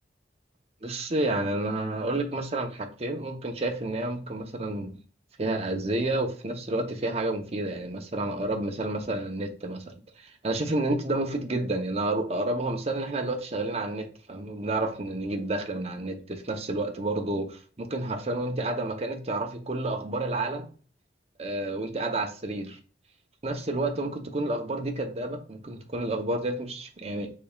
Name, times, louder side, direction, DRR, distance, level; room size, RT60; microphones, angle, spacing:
voice 1, 0.8-5.0 5.4-20.7 21.4-22.8 23.4-27.3, right 2 dB, 35° right, 0.8 m, -30 dB
5.2 x 4.1 x 2.3 m
head